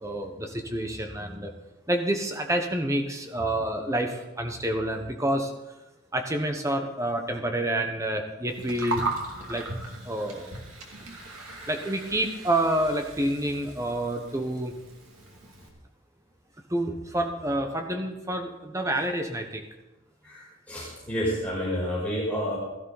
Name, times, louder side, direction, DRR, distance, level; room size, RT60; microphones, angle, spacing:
voice 1, 0.0-1.5 1.9-5.5 6.1-9.0 9.5-9.7 10.0-10.5 11.7-14.8 16.7-19.7, right 1 dB, 15° right, 4 dB, 1.1 m, -28 dB
Gurgling, 8.5-15.7, right 2 dB, 85° right, 2.6 m, -37 dB
voice 2, 20.2-22.6, equal, 5° left, -7 dB, 5.5 m, -30 dB
16.5 x 13.5 x 4.1 m, 1.0 s
head